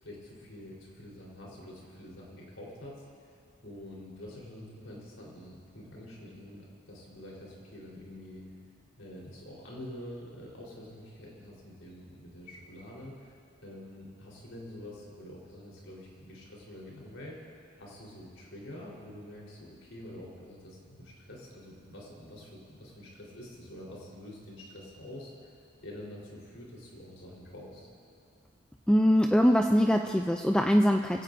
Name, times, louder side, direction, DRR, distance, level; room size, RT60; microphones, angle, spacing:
voice 1, 0.0-3.4 3.6-8.4 9.0-13.3 13.6-17.4 17.8-25.5 25.8-27.9, left 1 dB, 90° left, -4 dB, 4.1 m, -46 dB
voice 2, 28.9-31.2, equal, 5° left, 3 dB, 0.3 m, -23 dB
23.0 x 16.5 x 2.7 m, 2.3 s
head